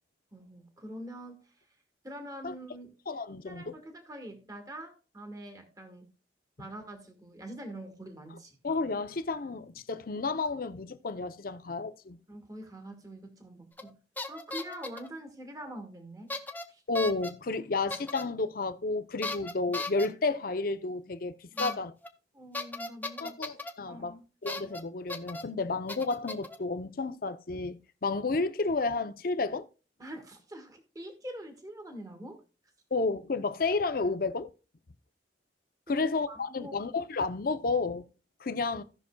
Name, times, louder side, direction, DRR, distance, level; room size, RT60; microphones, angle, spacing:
voice 1, 0.3-1.6 2.0-2.9 3.4-6.1 6.6-8.6 12.3-14.0 14.3-16.3 16.7-16.8 21.5-21.8 22.3-23.6 23.9-24.2 30.0-32.4 35.9-36.8, right 1 dB, 20° right, 1.5 m, -44 dB
voice 2, 3.1-3.7 8.6-12.2 16.9-21.9 23.2-24.1 24.4-29.7 32.9-34.5 35.9-38.0 38.4-38.8, left 3 dB, 55° left, 0.6 m, -31 dB
sound 1, 13.8-13.9 14.2-15.1 16.3-16.6 16.9-17.3 17.9-18.2 19.2-20.1 21.6-21.7 22.0-22.1 22.5-23.7 24.5-24.8 25.1-25.4 25.9-26.6, left 2 dB, 10° left, 0.7 m, -36 dB
17.0 x 5.9 x 2.2 m
head